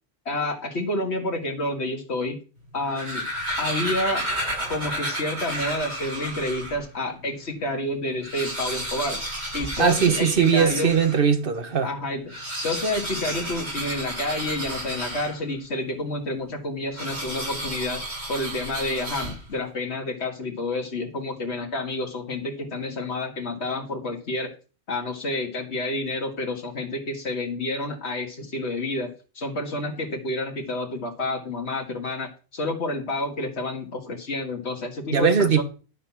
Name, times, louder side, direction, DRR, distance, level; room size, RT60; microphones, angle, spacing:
voice 1, 0.3-2.4 2.7-3.2 3.6-4.3 4.7-9.2 9.5-10.9 11.8-12.4 12.6-24.5 24.9-35.6, left 2 dB, 90° left, 2.0 m, -29 dB
sound 1, 2.7-6.8 7.4-7.5 7.7-7.8 8.1-11.2 12.2-15.6 16.9-19.6, right 1 dB, 85° right, 6.2 m, -32 dB
voice 2, 9.8-11.9 35.1-35.6, right 6 dB, 55° right, 1.4 m, -20 dB
11.5 x 5.8 x 5.9 m
omnidirectional pair, 1.1 m